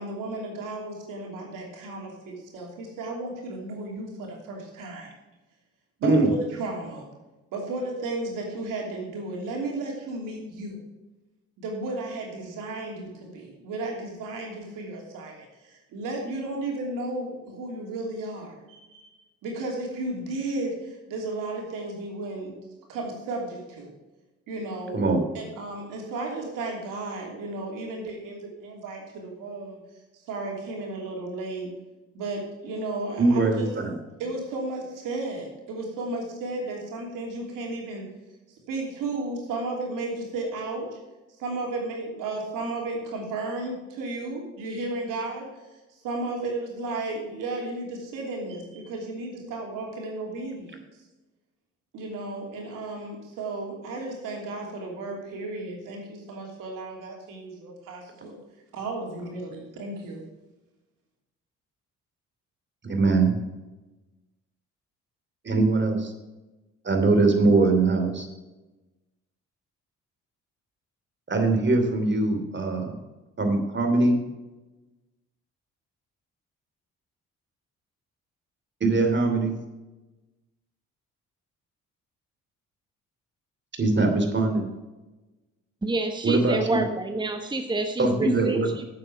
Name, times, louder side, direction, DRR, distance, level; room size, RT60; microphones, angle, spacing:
voice 1, 0.0-5.1 6.0-7.0 7.5-10.8 11.6-19.1 19.4-22.6 22.9-23.9 24.5-25.0 25.3-29.8 30.1-31.7 32.1-33.7 34.2-38.0 38.5-41.0 41.4-45.5 46.0-50.8 51.9-58.4 58.7-60.3, right 2 dB, 80° right, 0 dB, 3.1 m, -34 dB
voice 2, 33.2-34.0 62.9-63.3 65.4-66.1 66.8-68.3 71.3-72.9 73.4-74.2 78.8-79.5 83.8-84.6 86.2-86.8 88.0-88.7, right 3 dB, 35° right, 4 dB, 2.8 m, -22 dB
voice 3, 85.8-88.9, right 2 dB, 15° right, 6 dB, 1.2 m, -28 dB
8.6 x 7.7 x 6.2 m, 1.1 s
supercardioid pair, 65°, 32 cm